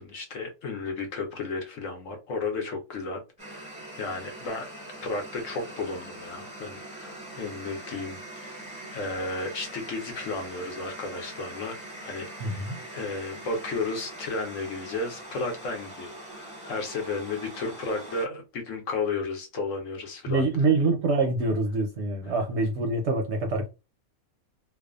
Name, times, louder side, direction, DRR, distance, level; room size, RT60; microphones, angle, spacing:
voice 1, 0.0-4.7 5.0-8.6 8.9-12.6 12.9-20.5, left 3 dB, 65° left, 1.1 m, -33 dB
sound 1, 3.4-18.3, right 1 dB, 5° right, 0.8 m, -42 dB
voice 2, 12.4-12.8 20.3-23.7, right 3 dB, 65° right, 0.7 m, -25 dB
2.6 x 2.3 x 2.3 m
omnidirectional pair, 1.5 m